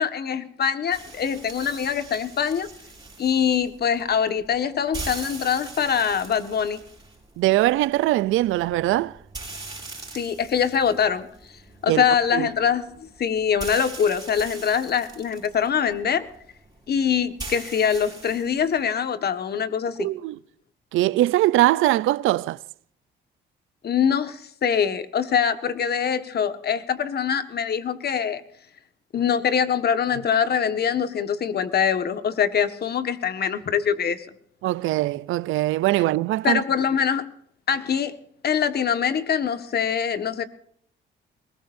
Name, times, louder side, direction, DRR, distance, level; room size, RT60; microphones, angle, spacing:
voice 1, 0.0-2.7 3.2-6.8 10.1-11.3 11.8-16.3 16.9-20.1 23.8-28.4 29.1-34.2 36.4-37.3 37.7-38.2 38.4-40.4, left 7 dB, 55° left, 1.6 m, -23 dB
sound 1, 0.9-18.8, right 3 dB, 20° right, 5.9 m, -42 dB
voice 2, 7.4-9.2 11.9-12.5 20.0-20.4 20.9-22.6 34.6-36.6, right 16 dB, 85° right, 0.5 m, -22 dB
21.5 x 20.0 x 2.7 m
cardioid pair, 90°, 20 cm